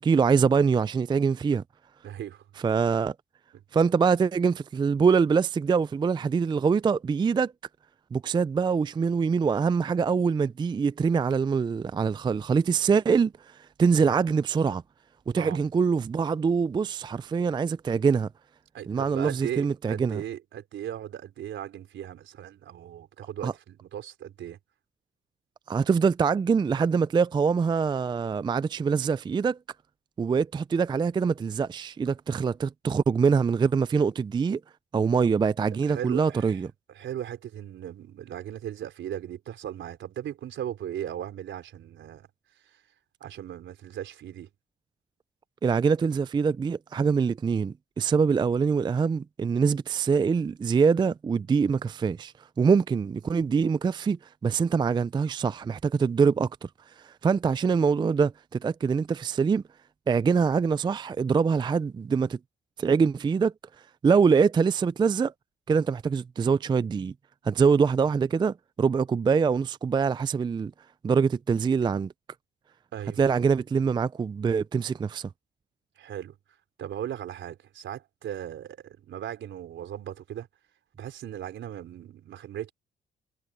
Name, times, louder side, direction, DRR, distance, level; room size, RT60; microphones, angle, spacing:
voice 1, 0.0-1.6 2.6-3.1 3.7-7.5 8.1-14.8 15.3-18.3 18.9-20.2 23.4-23.5 25.7-29.6 30.2-34.6 34.9-36.7 45.6-56.5 57.0-59.6 60.1-62.4 62.8-63.5 64.0-65.3 65.7-67.1 67.4-70.7 71.0-72.1 73.2-75.3, right 5 dB, 25° right, 0.4 m, -24 dB
voice 2, 2.0-2.4 3.5-3.6 13.9-14.1 15.4-15.6 18.7-24.6 35.8-36.6 36.9-42.3 42.6-42.8 43.2-44.5 72.9-73.2 76.0-80.5 81.0-82.7, right 10 dB, 70° right, 4.1 m, -38 dB
cardioid pair, 90°, 20 cm